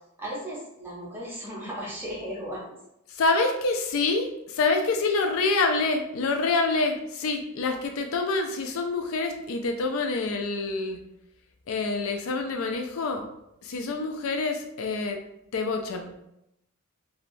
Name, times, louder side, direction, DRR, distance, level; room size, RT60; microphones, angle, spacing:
voice 1, 0.2-2.8, equal, 10° right, -6 dB, 0.8 m, -36 dB
voice 2, 3.1-11.0 11.7-13.3 13.6-15.2 15.5-16.2, left 3 dB, 75° left, 5 dB, 0.4 m, -26 dB
3.1 x 2.0 x 2.6 m, 0.83 s
head